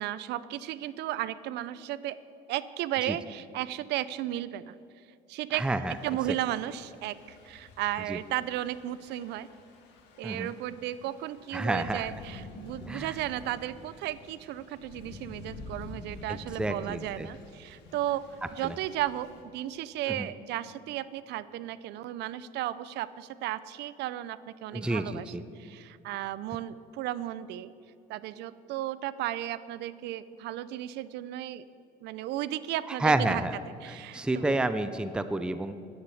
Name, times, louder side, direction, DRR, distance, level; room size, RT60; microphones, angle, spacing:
voice 1, 0.0-2.2 2.5-4.8 5.3-5.7 6.0-9.5 10.2-18.3 18.5-25.3 25.6-27.7 28.1-31.7 32.0-33.4 33.8-34.6, right 13 dB, 75° right, 17 dB, 0.5 m, -34 dB
voice 2, 5.5-6.0 8.1-8.2 10.2-10.5 11.5-12.1 12.9-13.1 16.3-17.3 18.6-18.7 20.1-20.3 24.7-25.4 32.9-33.6 34.1-35.7, right 2 dB, 5° right, 11 dB, 0.5 m, -29 dB
Thunder / Rain, 5.8-19.4, left 3 dB, 75° left, 2.0 m, -49 dB
10.0 x 9.7 x 7.2 m, 2.6 s
cardioid pair, 110°, 18 cm